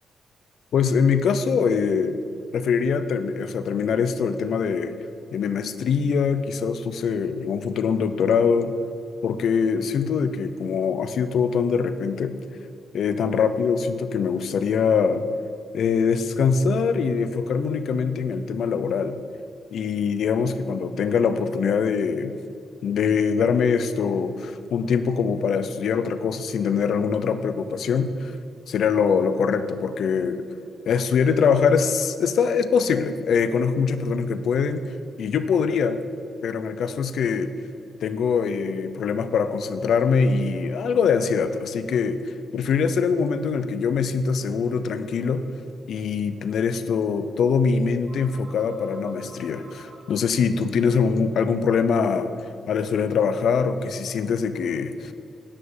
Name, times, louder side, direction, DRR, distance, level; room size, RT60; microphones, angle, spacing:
voice 1, 0.7-2.2 2.5-4.9 5.3-8.8 9.2-12.3 12.9-15.2 15.7-19.2 19.7-22.4 22.8-28.3 28.7-30.4 30.9-34.8 35.2-36.0 36.4-37.5 38.0-42.2 42.5-45.4 45.9-52.3 52.7-55.1, left 6 dB, 70° left, 11 dB, 0.7 m, -23 dB
sound 1, 45.6-51.6, right 2 dB, 45° right, 2.3 m, -51 dB
9.9 x 9.3 x 5.6 m, 2.4 s
cardioid pair, 125°, 0 cm